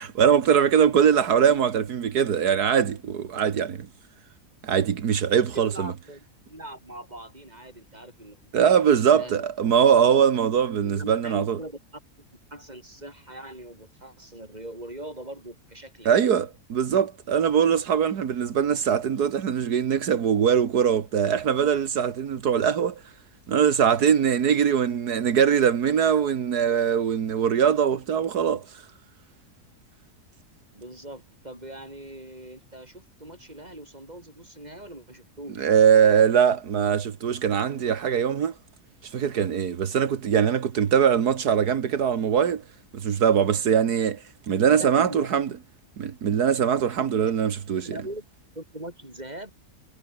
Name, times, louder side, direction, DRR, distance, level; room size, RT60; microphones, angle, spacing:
voice 1, 0.0-3.9 4.6-5.9 8.5-11.6 16.1-23.0 23.5-28.8 35.6-38.5 39.0-42.6 42.9-45.5 46.0-48.0, right 8 dB, 85° right, 1.9 m, -22 dB
voice 2, 5.3-8.8 9.2-9.3 10.8-11.8 12.5-16.3 30.7-35.7 44.8-45.3 47.2-47.3 47.7-48.3 48.5-49.5, right 1 dB, 25° right, 6.5 m, -41 dB
omnidirectional pair, 1.6 m